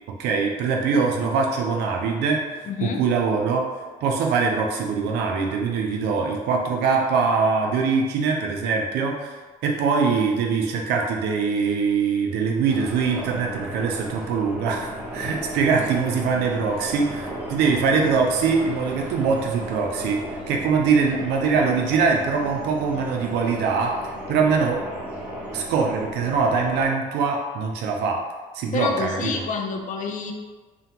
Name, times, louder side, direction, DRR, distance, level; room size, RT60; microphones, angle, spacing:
voice 1, 0.2-3.7 4.0-9.4 9.6-20.2 20.5-23.9 24.3-24.8 25.5-28.2 28.5-29.3, right 5 dB, 80° right, 1 dB, 0.4 m, -23 dB
voice 2, 2.6-3.0 15.7-15.9 21.2-21.3 28.7-30.3, left 5 dB, 50° left, 3 dB, 0.4 m, -28 dB
sound 1, 12.7-26.9, equal, 10° right, 0.6 m, -35 dB
2.8 x 2.1 x 2.8 m, 1.3 s
cardioid pair, 110°, 17 cm